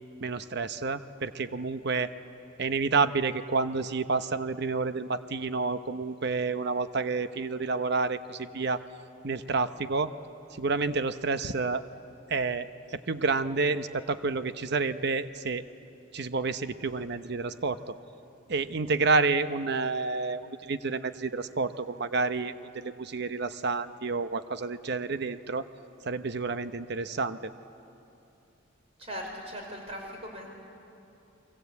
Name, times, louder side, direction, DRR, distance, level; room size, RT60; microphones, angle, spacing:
voice 1, 0.2-2.1 2.6-8.8 9.2-10.1 10.5-11.8 12.3-15.6 16.1-17.9 18.5-25.6 26.0-27.5, right 4 dB, 55° right, 11 dB, 0.8 m, -29 dB
voice 2, 29.0-30.5, equal, 30° right, 1 dB, 4.9 m, -39 dB
30.0 x 23.0 x 8.4 m, 2.9 s
head